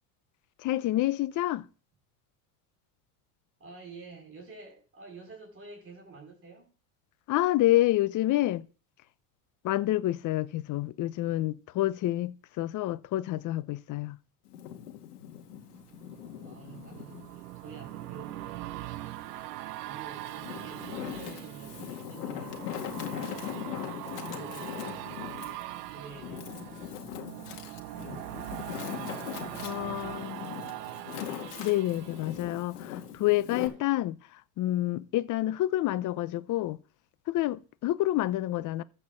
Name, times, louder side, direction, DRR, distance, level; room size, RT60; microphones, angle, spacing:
voice 1, 0.6-1.7 7.3-8.7 9.6-14.2 29.6-30.3 31.6-36.8 37.3-38.8, left 15 dB, 40° left, 0.7 m, -28 dB
voice 2, 3.6-6.7 16.4-19.2 19.8-23.8 24.2-25.4 25.9-26.9 27.2-28.8 29.5-31.3, right 4 dB, 30° right, 4.8 m, -50 dB
Wind, 14.4-17.3 17.8-19.1 19.7-33.7, left 11 dB, 85° left, 2.1 m, -41 dB
sound 1, 15.4-33.2 33.6-33.7, right 16 dB, 85° right, 0.7 m, -42 dB
13.5 x 4.7 x 7.3 m
supercardioid pair, 100°, 46 cm